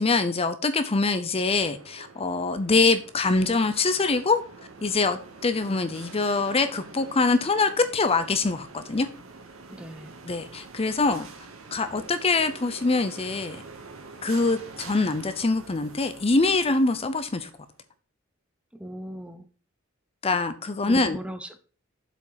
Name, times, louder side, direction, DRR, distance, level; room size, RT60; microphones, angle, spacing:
voice 1, 0.0-4.4 4.8-9.1 10.2-11.3 11.7-13.6 14.2-17.5 20.2-21.2, left 3 dB, 30° left, 10 dB, 0.6 m, -24 dB
sound 1, 1.7-17.8, right 3 dB, 90° right, 1.6 m, -46 dB
voice 2, 9.7-10.1 18.7-19.5 20.9-21.6, right 1 dB, 5° right, 9 dB, 0.8 m, -38 dB
7.9 x 5.1 x 5.6 m, 0.38 s
head